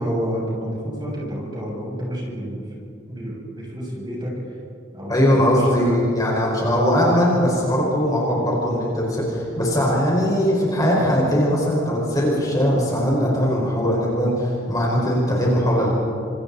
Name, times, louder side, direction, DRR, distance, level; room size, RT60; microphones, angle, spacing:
voice 1, 0.0-4.6 4.9-6.0, equal, 25° right, -4 dB, 7.5 m, -30 dB
voice 2, 5.1-15.9, equal, 20° left, -4 dB, 5.3 m, -20 dB
30.0 x 27.5 x 4.3 m, 2.6 s
head